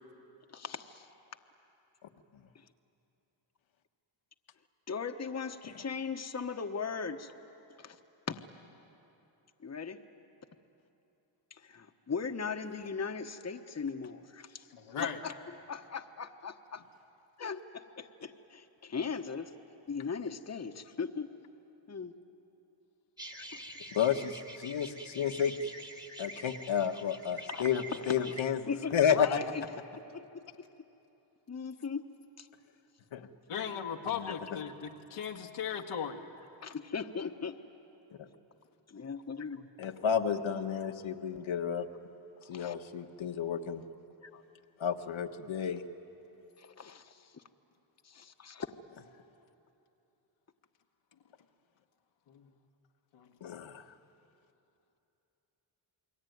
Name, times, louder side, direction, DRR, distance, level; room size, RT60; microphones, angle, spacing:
voice 1, 0.5-1.1 4.9-7.3 7.8-8.0 8.3-8.4 9.6-10.0 11.5-14.7 15.0-15.3 15.7-16.8 17.4-19.5 19.9-21.3 21.9-22.1 23.4-23.6 26.2-26.3 27.5-27.7 28.7-29.6 30.1-30.7 31.5-32.1 32.4-32.5 36.6-37.6 38.9-39.7 42.5-42.7 44.3-44.4 46.6-47.4 48.0-48.7, left 5 dB, 30° left, 1.2 m, -38 dB
voice 2, 14.7-15.2 33.5-36.2 52.3-52.5 53.1-53.3, left 7 dB, 90° left, 1.8 m, -37 dB
sound 1, 23.2-28.4, right 1 dB, 10° right, 1.8 m, -46 dB
voice 3, 23.9-25.5 26.2-29.4 33.1-33.3 34.1-34.3 38.2-38.3 39.8-41.9 42.5-43.8 44.8-45.8 53.4-53.8, left 8 dB, 65° left, 1.5 m, -31 dB
28.5 x 22.0 x 9.4 m
cardioid pair, 65°, 50 cm